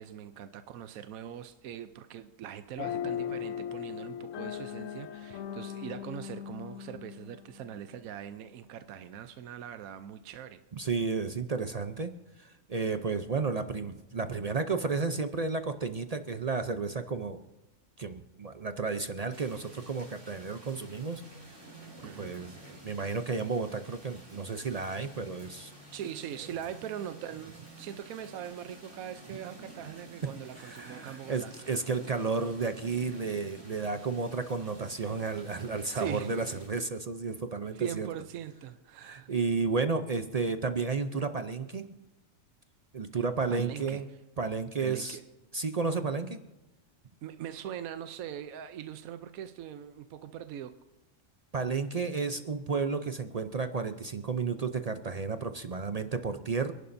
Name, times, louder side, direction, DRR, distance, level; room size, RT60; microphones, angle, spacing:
voice 1, 0.0-10.6 22.0-22.4 25.9-31.8 35.9-36.3 37.7-39.3 43.5-44.0 44.8-45.2 47.2-50.8, right 9 dB, 85° right, 10 dB, 1.1 m, -41 dB
sound 1, 2.8-8.2, left 9 dB, 70° left, 0.9 m, -38 dB
voice 2, 10.7-12.1 12.4-17.4 18.0-21.2 22.2-25.7 29.3-29.4 30.2-30.3 30.6-38.1 39.0-41.9 42.9-44.1 44.4-45.2 45.5-46.4 51.5-56.7, right 4 dB, 50° right, 8 dB, 0.4 m, -32 dB
sound 2, 19.3-36.7, right 2 dB, 15° right, 2.8 m, -51 dB
28.5 x 11.0 x 2.6 m, 1.1 s
omnidirectional pair, 1.4 m